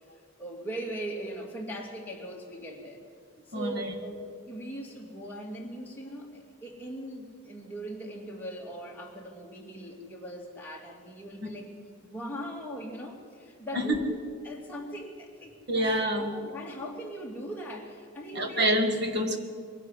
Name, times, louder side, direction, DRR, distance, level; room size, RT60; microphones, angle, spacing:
voice 1, 0.4-3.0 3.5-4.2 4.5-11.7 12.0-14.2 14.4-15.9 16.2-18.6, right 1 dB, 10° left, -2 dB, 2.6 m, -40 dB
voice 2, 3.5-3.9 13.7-14.0 15.7-16.4 18.3-19.4, equal, 50° right, 5 dB, 2.0 m, -27 dB
22.0 x 12.5 x 9.9 m, 2.1 s
head